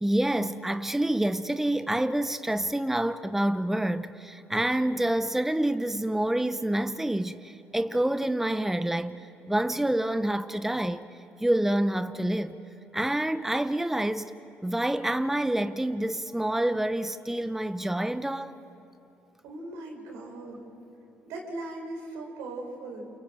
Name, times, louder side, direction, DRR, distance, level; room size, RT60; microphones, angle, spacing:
voice 1, 0.0-11.0 11.4-12.6 12.9-14.3 14.6-18.6, right 1 dB, 5° right, 0.8 m, -27 dB
voice 2, 19.4-20.7 21.3-23.1, right 2 dB, 85° right, 4.9 m, -39 dB
29.0 x 24.0 x 7.7 m
supercardioid pair, 70°, 5 cm